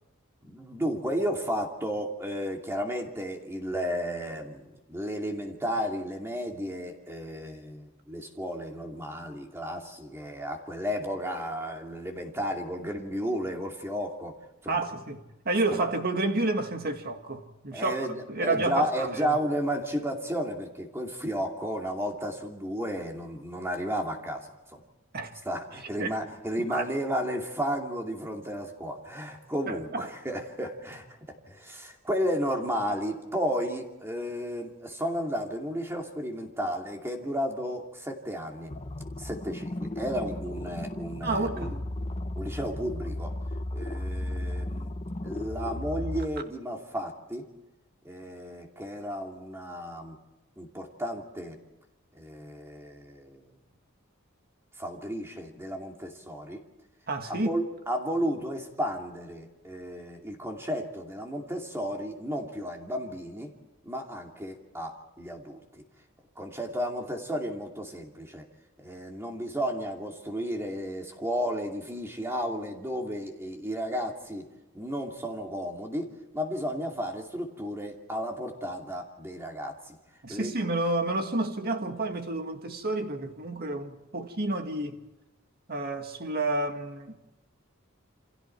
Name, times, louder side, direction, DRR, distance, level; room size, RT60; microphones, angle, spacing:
voice 1, 0.4-14.4 14.6-14.8 15.8-15.9 17.7-24.8 25.4-31.2 31.5-38.7 39.2-41.8 42.4-43.3 43.7-44.9 45.2-47.5 48.0-50.2 50.6-51.6 52.1-53.5 54.8-56.6 57.3-63.5 63.8-65.8 66.4-68.4 68.8-74.5 74.7-80.0 80.3-80.5, equal, 10° right, 2.5 m, -33 dB
voice 2, 14.7-18.0 18.3-19.3 25.1-25.3 26.0-26.2 26.7-26.9 29.7-30.1 41.2-41.7 57.1-57.6 80.2-85.0 85.7-87.2, right 2 dB, 45° right, 2.0 m, -30 dB
sound 1, 38.7-46.3, left 1 dB, 30° left, 1.0 m, -35 dB
28.5 x 26.0 x 4.6 m
head